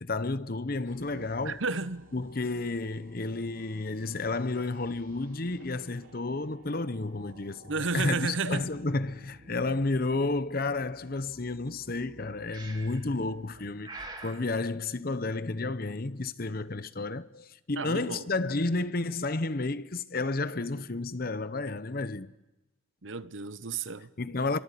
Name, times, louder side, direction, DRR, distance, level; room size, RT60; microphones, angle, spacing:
voice 1, 0.0-1.6 2.1-22.3 24.2-24.6, left 3 dB, 45° left, 0.9 m, -31 dB
sound 1, 0.8-14.9, right 1 dB, 90° right, 3.3 m, -56 dB
voice 2, 1.1-2.1 7.7-8.7 17.8-18.3 23.0-24.1, right 4 dB, 70° right, 0.9 m, -33 dB
Breathing, 12.5-13.1 13.8-14.4, right 2 dB, 20° right, 2.4 m, -43 dB
29.5 x 23.5 x 8.4 m
head